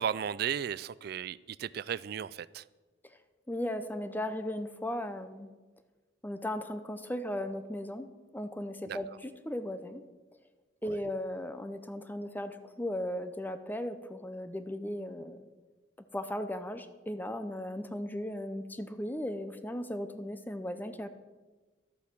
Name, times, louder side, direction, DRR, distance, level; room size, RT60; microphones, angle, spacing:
voice 1, 0.0-2.6 8.9-9.0, right 8 dB, 55° right, 19 dB, 0.3 m, -35 dB
voice 2, 3.5-5.5 6.2-8.1 8.3-10.0 10.8-15.5 16.1-21.1, left 1 dB, 10° left, 10 dB, 0.6 m, -36 dB
12.0 x 8.4 x 6.0 m, 1.3 s
head